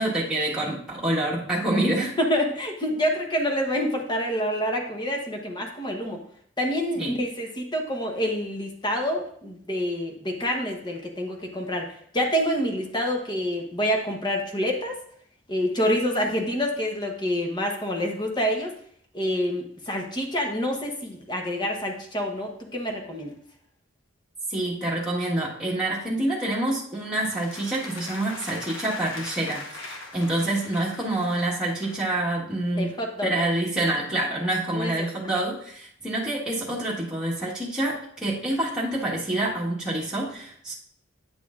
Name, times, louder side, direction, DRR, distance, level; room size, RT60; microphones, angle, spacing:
voice 1, 0.0-2.1 6.9-7.1 24.5-32.9 33.2-40.7, right 1 dB, 5° right, -7 dB, 1.5 m, -27 dB
voice 2, 2.2-6.2 6.6-11.9 12.1-15.0 15.5-18.7 19.1-23.3 32.8-33.3 34.8-35.1, equal, 25° left, 2 dB, 1.0 m, -27 dB
sound 1, 27.3-32.1, left 3 dB, 75° left, 1.1 m, -41 dB
9.4 x 6.6 x 2.5 m, 0.63 s
head